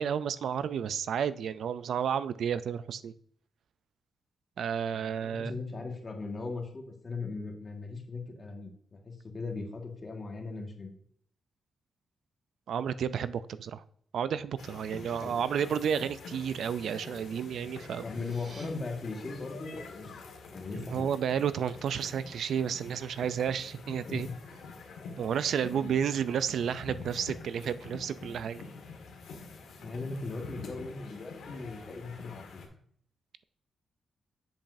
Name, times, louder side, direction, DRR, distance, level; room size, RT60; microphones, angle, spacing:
voice 1, 0.0-3.1 4.6-5.5 12.7-13.8 14.1-18.0 20.9-24.3 25.2-28.6, right 8 dB, 75° right, 15 dB, 0.3 m, -31 dB
voice 2, 4.9-10.9 15.2-15.3 18.0-20.1 20.5-21.1 24.1-24.3 25.6-25.9 29.8-32.6, left 3 dB, 35° left, 2 dB, 1.6 m, -39 dB
sound 1, 14.6-32.7, left 4 dB, 90° left, 1.6 m, -47 dB
sound 2, 17.9-18.7, right 3 dB, 50° right, 1.5 m, -53 dB
7.7 x 7.1 x 2.6 m, 0.62 s
cardioid pair, 100°, 0 cm